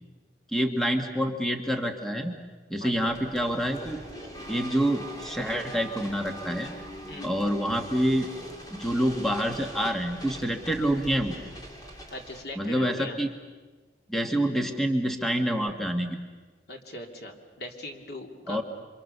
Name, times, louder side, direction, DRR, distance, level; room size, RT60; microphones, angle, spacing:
voice 1, 0.5-2.3 2.7-4.0 4.5-6.7 7.2-8.3 8.7-11.3 12.5-13.3 14.1-16.2 18.5-18.6, equal, ahead, 4 dB, 1.6 m, -27 dB
voice 2, 2.8-3.2 7.1-7.3 12.1-13.2 16.7-18.6, left 1 dB, 65° left, 2 dB, 3.1 m, -40 dB
sound 1, 2.9-12.4, equal, 20° left, 3.0 m, -42 dB
28.0 x 25.5 x 6.8 m, 1.3 s
head